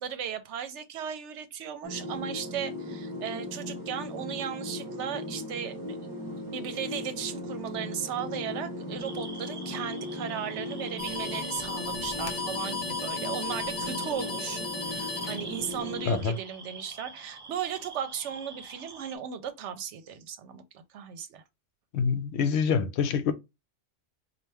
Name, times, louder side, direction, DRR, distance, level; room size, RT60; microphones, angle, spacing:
voice 1, 0.0-6.0 6.4-21.4, right 8 dB, 70° right, 1.0 m, -36 dB
sound 1, 1.8-16.2, left 1 dB, 20° right, 1.1 m, -38 dB
sound 2, 9.0-19.2, right 4 dB, 40° right, 0.3 m, -45 dB
sound 3, 11.0-16.0, left 4 dB, 35° left, 0.8 m, -35 dB
voice 2, 16.1-16.4 21.9-23.3, left 6 dB, 70° left, 0.8 m, -26 dB
4.3 x 2.5 x 3.4 m
omnidirectional pair, 1.2 m